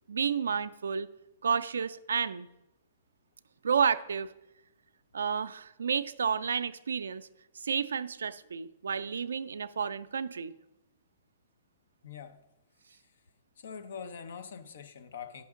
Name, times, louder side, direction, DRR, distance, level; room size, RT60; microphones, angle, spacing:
voice 1, 0.1-1.1 1.4-2.5 3.6-4.3 5.1-7.3 7.5-10.5, right 6 dB, 80° right, 0.4 m, -31 dB
voice 2, 12.0-12.4 13.6-15.4, left 6 dB, 70° left, 0.7 m, -43 dB
10.5 x 5.8 x 3.7 m
hypercardioid pair, 125°, 0 cm